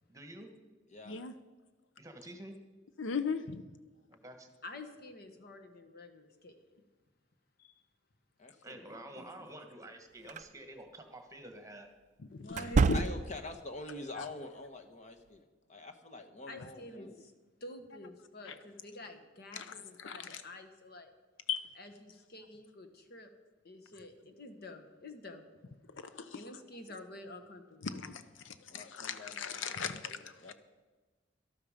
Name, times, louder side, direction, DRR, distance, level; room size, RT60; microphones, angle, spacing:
voice 1, 0.1-0.5 2.0-2.5 4.1-4.5 8.6-11.9, right 1 dB, 15° right, 6 dB, 1.4 m, -49 dB
voice 2, 3.0-3.6 12.3-12.6 12.9-13.0 14.2-14.3 18.5-18.6 19.6-20.4 21.5-21.6 26.1-26.3 27.8-30.5, left 6 dB, 80° left, 11 dB, 0.7 m, -38 dB
voice 3, 4.6-6.8 7.6-7.8 12.3-12.9 16.5-17.3 17.6-21.1 21.8-23.3 23.6-25.5 26.3-27.9, left 2 dB, 55° left, 7 dB, 1.4 m, -49 dB
voice 4, 8.4-9.5 12.5-12.6 12.9-15.4 15.7-17.2 28.7-30.5, left 2 dB, 40° left, 5 dB, 1.3 m, -46 dB
sound 1, 10.3-10.5 12.5-13.5, right 4 dB, 40° right, 0.3 m, -28 dB
13.0 x 12.5 x 5.1 m, 1.3 s
head